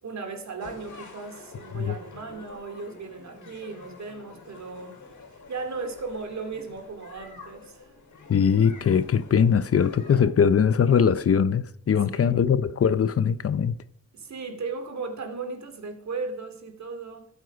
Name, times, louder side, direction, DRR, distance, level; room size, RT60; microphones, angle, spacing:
voice 1, 0.0-5.0 5.5-7.9 12.1-12.4 14.1-17.3, right 4 dB, 65° right, 2.5 m, -36 dB
sound 1, 0.6-10.3, left 3 dB, 75° left, 4.2 m, -47 dB
voice 2, 8.3-13.8, left 7 dB, 50° left, 0.6 m, -21 dB
20.5 x 7.9 x 5.2 m
wide cardioid pair, 150°, 30 cm